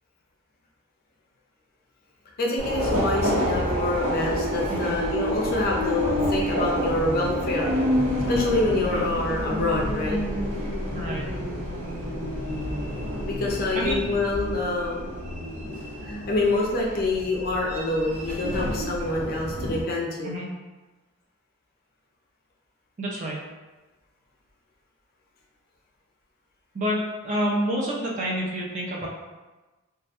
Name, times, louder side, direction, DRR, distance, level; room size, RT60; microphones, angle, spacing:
voice 1, 2.4-7.7 8.3-10.2 13.2-15.1 16.0-20.4, left 2 dB, 45° left, -2 dB, 0.4 m, -26 dB
Subway metro underground, 2.6-19.8, equal, 85° right, 0.7 m, -29 dB
sound 1, 6.1-13.2, left 1 dB, 50° right, 1.0 m, -38 dB
voice 2, 13.7-14.2 20.2-20.5 23.0-23.5 26.7-27.0 27.2-29.1, equal, 35° right, -3 dB, 0.4 m, -28 dB
2.2 x 2.1 x 2.8 m, 1.2 s
head